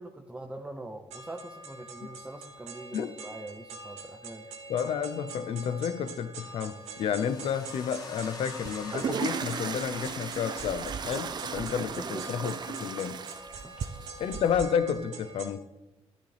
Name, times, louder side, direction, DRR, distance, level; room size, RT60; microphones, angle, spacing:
voice 1, 0.0-4.5 12.0-12.2 13.6-13.9, right 2 dB, 10° right, 4 dB, 0.7 m, -43 dB
sound 1, 1.1-15.5, right 3 dB, 85° right, 2.1 m, -45 dB
voice 2, 4.7-13.2 14.2-15.6, left 8 dB, 65° left, 12 dB, 0.7 m, -31 dB
sound 2, 6.7-13.6, left 2 dB, 40° left, 2.8 m, -48 dB
sound 3, 8.6-14.6, right 6 dB, 40° right, 0.5 m, -36 dB
13.0 x 11.0 x 3.4 m, 1.0 s
cardioid pair, 100°, 11 cm